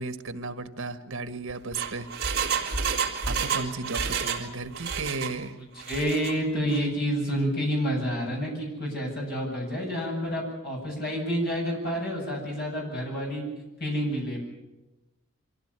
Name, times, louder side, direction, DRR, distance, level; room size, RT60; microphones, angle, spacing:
voice 1, 0.0-2.1 3.2-5.6, right 3 dB, 75° right, 10 dB, 1.7 m, -34 dB
Engine, 1.5-4.5 4.7-5.3 5.8-6.3 6.7-6.8, right 6 dB, 45° right, 3.7 m, -29 dB
voice 2, 5.5-13.4 13.8-14.4, equal, 45° left, -1 dB, 7.8 m, -29 dB
24.5 x 16.0 x 9.8 m, 1.0 s
head